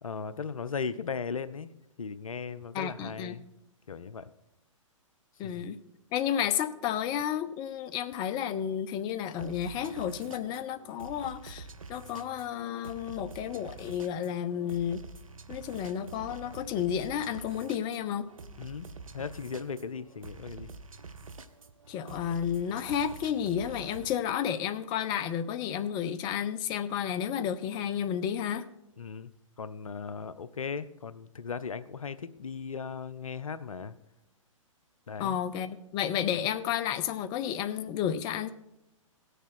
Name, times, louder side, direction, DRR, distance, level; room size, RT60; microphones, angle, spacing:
voice 1, 0.0-1.7 2.0-3.5 3.9-4.3 5.4-5.7 18.6-18.9 19.1-20.7 29.0-29.3 29.6-33.9 35.1-35.4, left 5 dB, 80° left, 15 dB, 0.6 m, -37 dB
voice 2, 2.7-3.4 5.4-5.8 6.1-15.0 15.5-18.3 21.9-28.7 35.2-38.5, left 9 dB, 25° left, 12 dB, 0.6 m, -32 dB
sound 1, 9.4-24.2, right 4 dB, 80° right, 0.8 m, -47 dB
17.5 x 6.7 x 4.4 m, 0.84 s
figure-of-eight pair, 120°, 17 cm